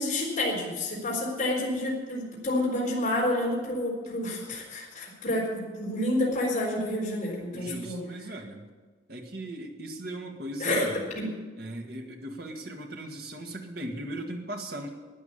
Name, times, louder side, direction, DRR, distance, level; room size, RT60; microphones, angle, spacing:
voice 1, 0.0-8.0 10.6-10.9 11.1-11.3, left 1 dB, 40° left, -4 dB, 4.2 m, -29 dB
voice 2, 7.5-8.6 9.1-11.1 11.6-14.9, right 1 dB, 50° right, 2 dB, 1.9 m, -38 dB
12.0 x 9.7 x 8.6 m, 1.3 s
head